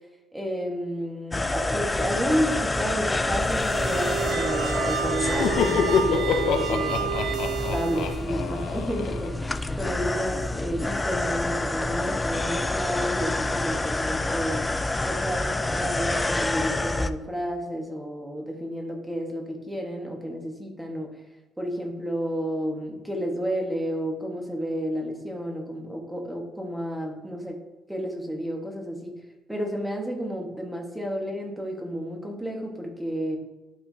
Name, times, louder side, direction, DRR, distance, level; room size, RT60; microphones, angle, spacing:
voice 1, 0.3-7.2 7.7-14.7 15.0-21.2 21.6-27.6 27.9-29.1 29.5-33.4, equal, 5° right, 1 dB, 1.4 m, -31 dB
sound 1, 1.3-17.1, left 2 dB, 15° left, 0.3 m, -28 dB
sound 2, 3.4-8.3, right 11 dB, 55° right, 0.7 m, -30 dB
Laughter, 5.1-9.8, left 6 dB, 75° left, 0.6 m, -27 dB
12.0 x 4.6 x 2.7 m, 1.2 s
cardioid pair, 130°, 0 cm